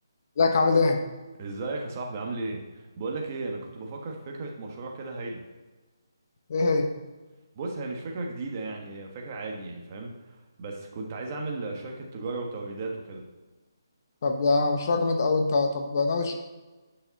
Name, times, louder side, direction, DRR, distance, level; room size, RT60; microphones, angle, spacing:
voice 1, 0.4-1.0 6.5-6.9 14.2-16.3, left 3 dB, 45° left, 5 dB, 1.0 m, -23 dB
voice 2, 1.4-5.4 7.5-13.2, right 3 dB, 35° right, 1 dB, 1.4 m, -35 dB
9.6 x 5.7 x 4.1 m, 1.2 s
figure-of-eight pair, 155°, 2 cm